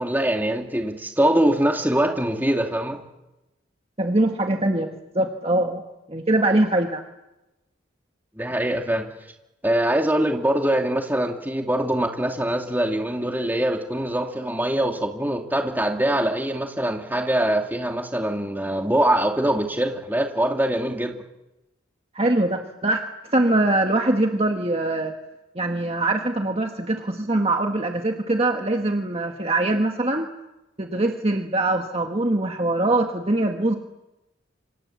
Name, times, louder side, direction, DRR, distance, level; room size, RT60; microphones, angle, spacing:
voice 1, 0.0-3.0 8.4-9.1 9.6-21.2, right 1 dB, 10° right, 2 dB, 2.6 m, -23 dB
voice 2, 4.0-4.9 5.1-5.8 6.1-7.0 22.1-23.0 23.3-25.1 25.5-30.3 30.8-33.8, right 2 dB, 30° right, 3 dB, 1.6 m, -22 dB
28.5 x 26.0 x 7.4 m, 0.95 s
head